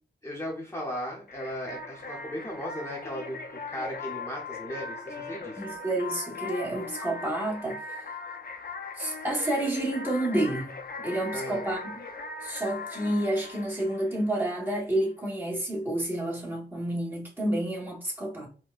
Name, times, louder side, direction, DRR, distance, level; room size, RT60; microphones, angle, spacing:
voice 1, 0.2-3.4 3.7-5.6 11.3-11.6, equal, 15° left, 0.8 m, -36 dB
sound 1, 1.3-14.7, left 3 dB, 55° left, 0.5 m, -40 dB
voice 2, 5.6-7.8 9.0-12.0 12.4-18.5, right 1 dB, 10° right, 1.1 m, -30 dB
4.3 x 2.1 x 2.4 m
wide cardioid pair, 100°, 18 cm